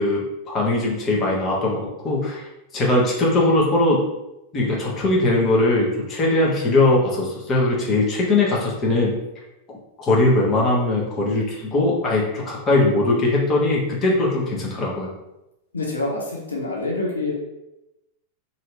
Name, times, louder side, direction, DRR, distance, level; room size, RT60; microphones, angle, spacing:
voice 1, 0.0-2.4 2.7-4.0 4.5-9.1 10.0-15.1, left 2 dB, 25° left, -3 dB, 0.9 m, -20 dB
voice 2, 15.7-17.3, left 2 dB, 75° left, -3 dB, 0.7 m, -26 dB
2.8 x 2.7 x 3.3 m, 0.92 s
figure-of-eight pair, 90°, 0 cm